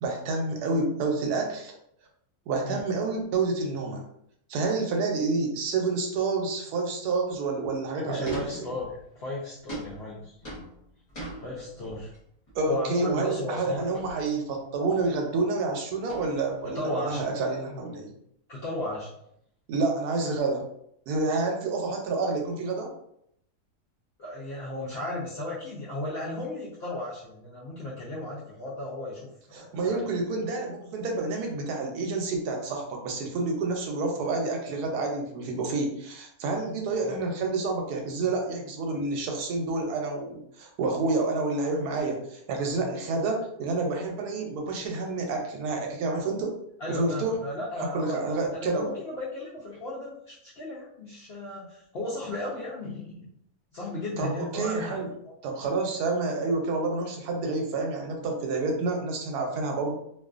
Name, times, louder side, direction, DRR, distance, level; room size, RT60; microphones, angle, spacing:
voice 1, 0.0-1.7 2.5-4.0 4.5-8.7 12.5-18.1 19.7-20.6 21.1-22.9 29.5-46.6 46.9-47.4 47.9-48.9 54.2-55.1 55.4-60.0, right 3 dB, 85° right, 2 dB, 1.1 m, -29 dB
voice 2, 8.0-10.4 11.4-12.1 12.7-13.9 16.7-17.2 18.5-19.1 24.2-30.0 37.0-37.2 46.8-48.2 48.5-53.3 53.7-55.3, left 1 dB, 70° left, -6 dB, 0.5 m, -35 dB
sound 1, 8.2-9.1 9.7-12.2 12.5-12.8 13.9-14.5 14.8-15.2 16.1-16.8, right 2 dB, 35° left, 0.8 m, -41 dB
2.5 x 2.4 x 2.4 m, 0.74 s
omnidirectional pair, 1.6 m